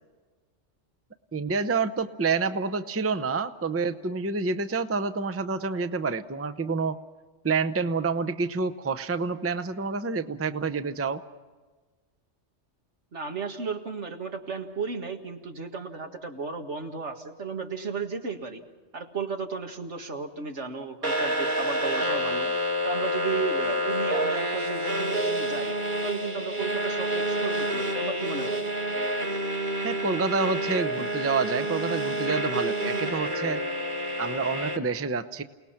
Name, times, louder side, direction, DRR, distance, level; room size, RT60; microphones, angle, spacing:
voice 1, 1.3-7.0 7.4-11.2 29.8-33.6 34.2-35.4, right 4 dB, 15° right, 11 dB, 0.6 m, -28 dB
voice 2, 13.1-18.6 18.9-22.5 22.8-25.8 26.0-28.6, right 5 dB, 80° right, 4 dB, 2.1 m, -34 dB
sound 1, 21.0-34.8, equal, 45° right, 2.1 m, -28 dB
29.0 x 19.0 x 5.8 m, 1.3 s
omnidirectional pair, 1.2 m